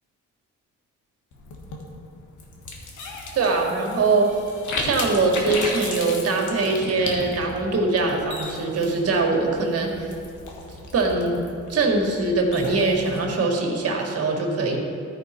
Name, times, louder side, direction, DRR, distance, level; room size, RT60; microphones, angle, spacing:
sound 1, 1.3-13.2, left 3 dB, 80° left, 1.5 m, -35 dB
voice 1, 3.3-4.3 4.8-10.1 10.9-11.4 11.7-14.8, right 3 dB, 50° right, 1 dB, 1.7 m, -22 dB
14.0 x 5.0 x 4.3 m, 2.4 s
cardioid pair, 90°, 30 cm